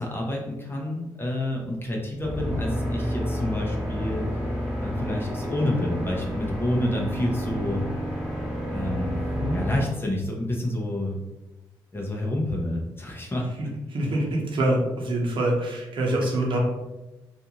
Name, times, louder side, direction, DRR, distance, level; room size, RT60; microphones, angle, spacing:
voice 1, 0.0-4.4 4.8-7.9 8.7-9.2 9.5-11.2 11.9-13.8, left 1 dB, 25° left, -1 dB, 0.7 m, -29 dB
sound 1, 2.2-9.8, equal, ahead, 1.3 m, -30 dB
voice 2, 13.9-16.6, right 1 dB, 65° right, -2 dB, 0.9 m, -25 dB
2.5 x 2.4 x 2.9 m, 1.0 s
supercardioid pair, 50°, 9 cm